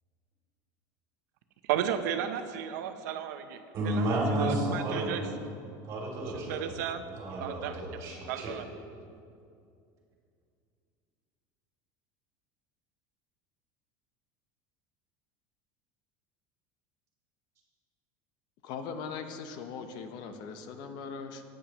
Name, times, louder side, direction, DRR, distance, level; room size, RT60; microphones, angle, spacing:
voice 1, 1.7-3.6 3.8-4.1 4.4-5.2 6.3-7.0 7.4-7.8 8.3-8.6, right 10 dB, 85° right, 9 dB, 0.7 m, -33 dB
voice 2, 3.7-5.3 5.8-6.7 7.1-8.6, right 1 dB, 35° right, -2 dB, 2.8 m, -31 dB
voice 3, 18.6-21.4, left 5 dB, 50° left, 8 dB, 0.8 m, -40 dB
14.0 x 9.0 x 3.0 m, 2.4 s
cardioid pair, 160°, 9 cm